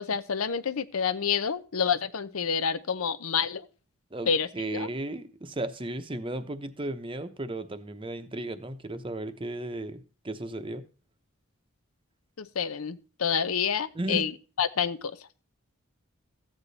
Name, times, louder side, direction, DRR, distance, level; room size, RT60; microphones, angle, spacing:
voice 1, 0.0-3.7 4.3-4.9 12.4-14.3 14.6-15.2, left 6 dB, 80° left, 0.7 m, -28 dB
voice 2, 4.1-10.8 13.9-14.3, right 1 dB, 25° right, 0.8 m, -35 dB
14.0 x 8.4 x 4.1 m
head